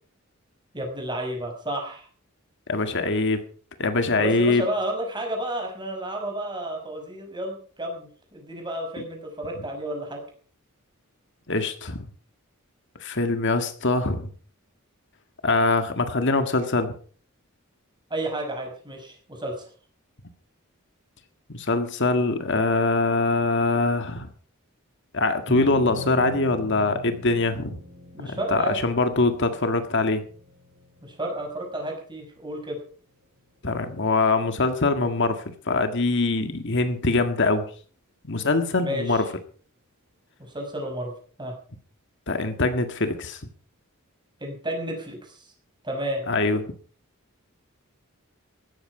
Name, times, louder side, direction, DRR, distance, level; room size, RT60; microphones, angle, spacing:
voice 1, 0.7-2.1 4.2-10.2 18.1-19.7 28.1-28.8 31.0-32.8 38.8-39.2 40.4-41.1 41.4-41.5 44.4-45.5 45.8-46.2, right 1 dB, 20° right, 3 dB, 5.7 m, -31 dB
voice 2, 2.7-3.4 3.8-4.6 9.0-9.1 11.5-12.1 13.0-14.3 15.4-16.9 21.5-24.3 25.1-27.8 28.2-30.2 33.6-37.7 38.2-39.2 42.3-43.4 46.3-46.6, left 3 dB, 55° left, 8 dB, 1.7 m, -23 dB
sound 1, 25.5-32.0, left 1 dB, 85° right, 5.4 m, -40 dB
16.5 x 13.5 x 4.9 m, 0.43 s
head